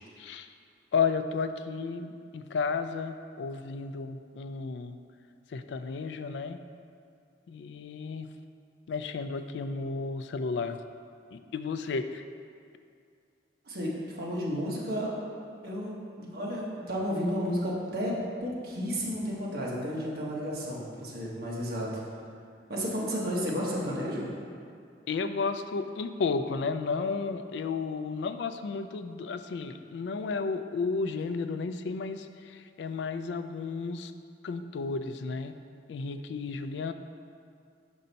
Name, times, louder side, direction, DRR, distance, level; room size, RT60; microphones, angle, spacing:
voice 1, 0.2-0.5 0.9-5.0 5.5-6.6 7.5-8.3 8.9-10.8 11.3-12.2 25.1-34.1 34.4-35.5 35.9-36.9, left 4 dB, 75° left, 9 dB, 0.3 m, -33 dB
voice 2, 13.6-15.1 15.6-22.0 22.7-24.3, equal, 55° right, -5 dB, 1.2 m, -32 dB
5.5 x 5.3 x 4.0 m, 2.3 s
head